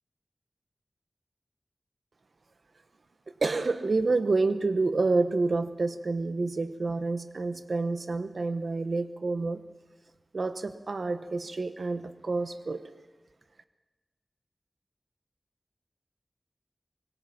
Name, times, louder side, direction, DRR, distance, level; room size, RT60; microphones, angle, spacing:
voice 1, 3.4-9.6 10.3-12.8, right 3 dB, 75° right, 10 dB, 1.1 m, -28 dB
25.5 x 20.5 x 5.9 m, 1.3 s
wide cardioid pair, 75°, 0 cm